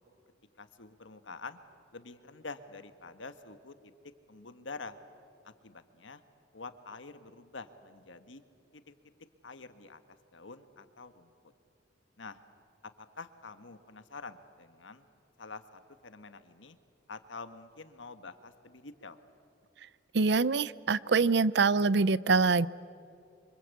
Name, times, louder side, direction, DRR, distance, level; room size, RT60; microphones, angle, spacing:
voice 1, 0.6-1.6 1.9-3.9 4.3-5.0 5.4-6.2 6.5-8.4 8.7-8.9 9.4-10.0 10.3-11.3 12.2-12.4 13.0-15.0 15.4-16.8 17.1-19.2, left 4 dB, 85° left, 10 dB, 1.5 m, -47 dB
voice 2, 20.1-22.7, right 4 dB, 65° right, 19 dB, 0.6 m, -25 dB
28.0 x 25.0 x 8.4 m, 2.4 s
head